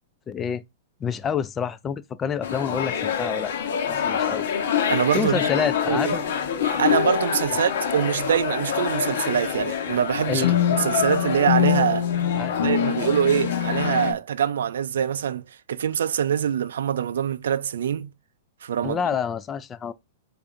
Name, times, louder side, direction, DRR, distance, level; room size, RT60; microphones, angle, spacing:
voice 1, 0.3-0.6 1.0-3.5 3.9-4.5 5.1-6.2 10.3-10.6 12.4-12.6 18.8-19.9, left 7 dB, 20° left, 0.3 m, -27 dB
sound 1, 2.4-14.1, left 8 dB, 70° left, 1.0 m, -27 dB
voice 2, 4.9-5.4 5.9-6.1 6.6-12.1 12.6-15.4 15.7-18.1 18.6-19.0, right 8 dB, 80° right, 0.3 m, -24 dB
sound 2, 5.1-5.3 6.9-8.0 10.4-14.1, left 10 dB, 90° left, 0.6 m, -25 dB
4.8 x 2.5 x 2.5 m
hypercardioid pair, 145°, 0 cm